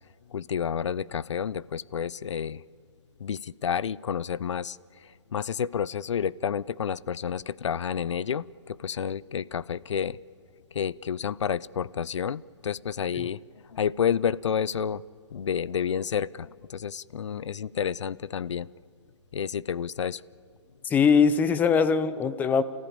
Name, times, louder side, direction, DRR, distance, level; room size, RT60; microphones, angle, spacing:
voice 1, 0.3-2.6 3.2-10.2 10.7-13.4 13.7-15.0 15.3-18.7 19.3-20.2, left 8 dB, 80° left, 22 dB, 0.5 m, -30 dB
voice 2, 20.8-22.6, left 6 dB, 10° left, 13 dB, 0.6 m, -21 dB
29.5 x 14.5 x 8.8 m, 2.3 s
hypercardioid pair, 145°, 15 cm